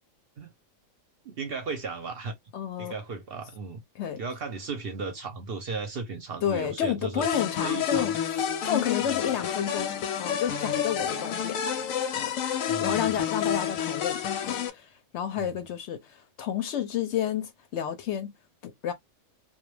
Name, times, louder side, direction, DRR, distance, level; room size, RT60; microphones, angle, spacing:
voice 1, 1.2-2.3 2.8-3.8 4.2-7.3 7.6-8.1 9.1-9.3 12.7-13.1 15.4-15.6, right 4 dB, 55° right, 0.7 m, -36 dB
voice 2, 2.5-3.0 4.0-4.2 6.4-11.6 12.1-12.3 12.8-18.3 18.6-18.9, left 9 dB, 65° left, 0.8 m, -31 dB
sound 1, 7.2-14.7, left 9 dB, 90° left, 1.0 m, -29 dB
2.3 x 2.2 x 3.1 m
omnidirectional pair, 1.4 m